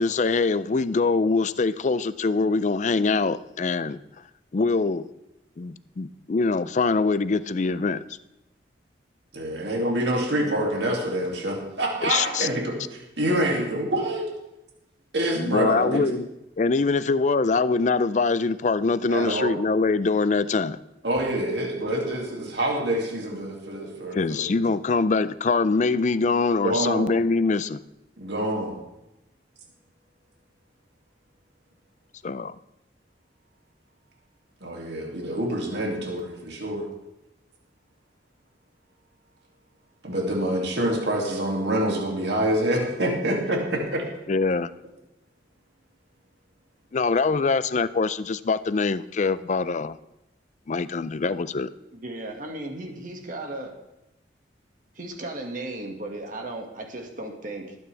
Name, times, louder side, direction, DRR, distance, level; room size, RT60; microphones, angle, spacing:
voice 1, 0.0-4.0 4.5-5.0 5.6-8.0 12.0-12.5 15.4-16.2 16.6-20.8 24.1-27.8 32.2-32.5 44.3-44.7 46.9-50.0 50.7-51.7, left 4 dB, 40° left, 15 dB, 0.4 m, -23 dB
voice 2, 9.3-14.3 15.1-16.1 19.1-19.5 21.0-24.6 26.6-27.1 28.2-28.8 34.6-36.9 40.0-44.0, right 1 dB, 70° right, -1 dB, 2.6 m, -26 dB
voice 3, 51.9-53.7 55.0-57.8, right 2 dB, 45° right, 2 dB, 2.0 m, -35 dB
20.5 x 9.3 x 3.4 m, 0.91 s
head